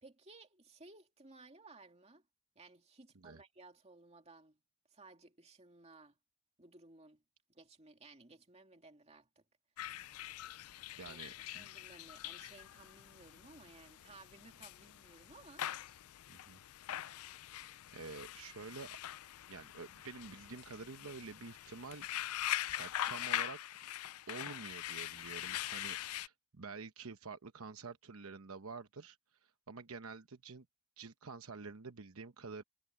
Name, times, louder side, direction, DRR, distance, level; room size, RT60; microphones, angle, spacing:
voice 1, 0.0-2.3 2.6-4.6 4.9-6.2 6.6-7.2 7.5-9.5 11.0-15.7, right 3 dB, 30° right, 2.5 m, -58 dB
sound 1, 9.8-26.3, left 13 dB, 75° left, 0.4 m, -43 dB
voice 2, 11.0-11.7 16.3-16.6 17.9-19.0 19.5-24.0 24.3-30.7 31.0-32.6, right 4 dB, 70° right, 1.0 m, -49 dB
Door, 18.1-18.6 19.8-21.5 22.6-23.1, left 2 dB, 55° left, 1.7 m, -72 dB
head